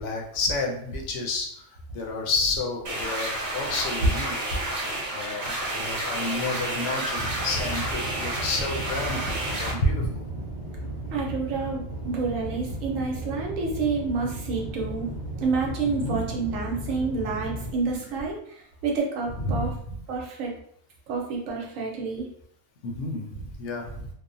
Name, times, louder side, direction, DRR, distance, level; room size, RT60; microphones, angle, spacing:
voice 1, 0.0-4.6 5.1-10.2 16.0-16.2 19.4-20.0 22.8-24.1, left 2 dB, 70° left, 0 dB, 0.9 m, -30 dB
sound 1, 2.8-9.7, right 1 dB, 55° right, 0.9 m, -30 dB
sound 2, 7.2-17.7, right 1 dB, 25° right, 0.6 m, -35 dB
voice 2, 11.1-15.1 15.4-19.7 20.1-20.5 21.1-22.3, right 4 dB, 80° right, -1 dB, 1.1 m, -29 dB
2.9 x 2.0 x 2.6 m, 0.67 s
omnidirectional pair, 1.3 m